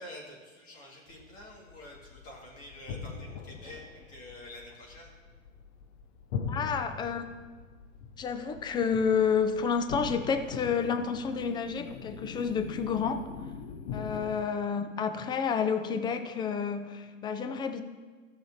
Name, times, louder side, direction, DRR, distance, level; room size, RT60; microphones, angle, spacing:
voice 1, 0.0-5.1, left 1 dB, 35° left, -2 dB, 2.1 m, -48 dB
sound 1, 1.1-14.5, left 6 dB, 55° left, 0.9 m, -42 dB
voice 2, 6.5-7.2 8.2-13.3 13.9-17.8, left 6 dB, 10° left, 9 dB, 0.4 m, -30 dB
15.5 x 6.6 x 2.9 m, 1.4 s
hypercardioid pair, 100°, 39 cm